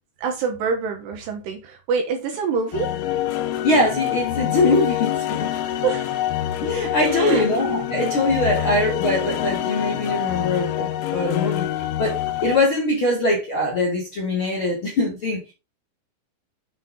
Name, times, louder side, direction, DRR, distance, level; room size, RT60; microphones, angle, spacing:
voice 1, 0.2-3.0 5.6-6.2 7.0-7.5, right 5 dB, 70° right, 2.9 m, -26 dB
sound 1, 2.7-12.6, left 12 dB, 85° left, 3.4 m, -26 dB
voice 2, 3.6-5.5 6.6-11.7 12.0-15.5, left 2 dB, 40° left, 2.1 m, -22 dB
8.4 x 4.6 x 3.9 m
omnidirectional pair, 5.6 m